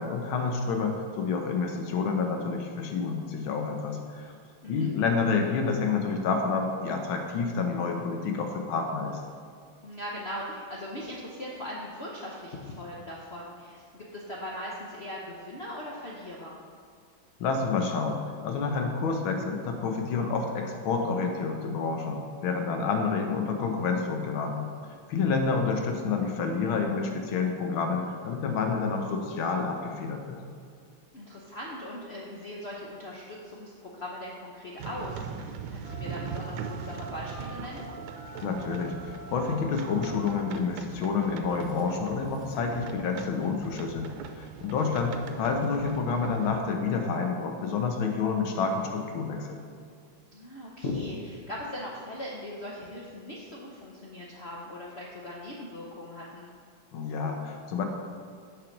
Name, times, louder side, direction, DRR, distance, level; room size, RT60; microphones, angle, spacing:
voice 1, 0.0-4.3 4.7-9.2 17.4-30.4 38.4-44.1 44.4-49.6 56.9-57.8, left 5 dB, 80° left, 4 dB, 1.7 m, -29 dB
voice 2, 9.8-16.6 31.1-37.8 50.3-56.5, left 1 dB, 60° left, -4 dB, 0.6 m, -39 dB
sound 1, 34.8-46.6, right 7 dB, 80° right, 1.4 m, -41 dB
Telephone, 35.8-42.7, equal, 35° left, 2.5 m, -47 dB
6.7 x 5.8 x 5.2 m, 2.2 s
omnidirectional pair, 2.2 m